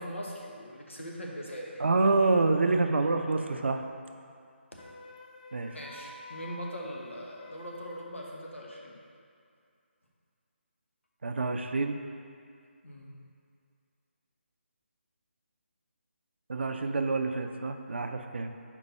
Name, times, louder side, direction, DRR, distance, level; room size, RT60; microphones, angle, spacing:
voice 1, 0.0-1.8 4.7-4.9 5.7-9.0 12.8-13.1, equal, 85° left, -2 dB, 1.1 m, -41 dB
voice 2, 1.8-3.9 5.5-5.8 11.2-12.0 16.5-18.5, right 3 dB, 65° right, 6 dB, 0.5 m, -27 dB
Wind instrument woodwind instrument, 4.7-8.2, left 2 dB, 35° left, 0.4 m, -49 dB
5.4 x 4.5 x 4.2 m, 2.3 s
figure-of-eight pair, 150°, 7 cm